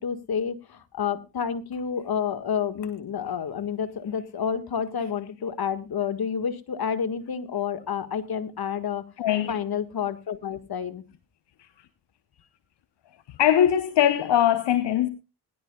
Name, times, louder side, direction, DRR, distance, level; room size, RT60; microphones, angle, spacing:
voice 1, 0.0-9.0 9.5-11.0, left 7 dB, 60° left, 1.8 m, -29 dB
voice 2, 9.2-9.6 13.4-15.1, left 10 dB, 80° left, 1.0 m, -21 dB
20.5 x 11.5 x 2.3 m
supercardioid pair, 45°, 41 cm